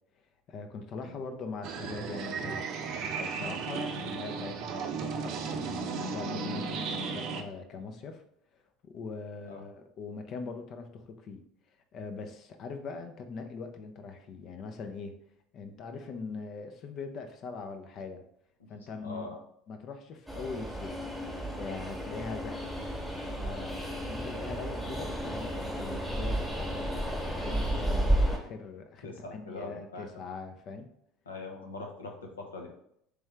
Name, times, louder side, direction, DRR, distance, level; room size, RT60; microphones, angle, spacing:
voice 1, 0.5-2.6 3.1-8.2 8.5-11.4 11.9-15.2 15.5-18.2 18.7-19.4 19.7-21.0 21.5-22.7 23.2-26.9 27.3-30.9, left 4 dB, 50° left, 6 dB, 0.6 m, -41 dB
sound 1, 1.6-7.4, right 5 dB, 55° right, 0.5 m, -35 dB
voice 2, 18.8-19.4 29.0-30.1 31.3-32.7, left 3 dB, 90° left, 2 dB, 0.7 m, -42 dB
Train, 20.3-28.4, right 1 dB, ahead, 1.2 m, -32 dB
3.5 x 3.3 x 3.3 m, 0.72 s
hypercardioid pair, 75°, 0 cm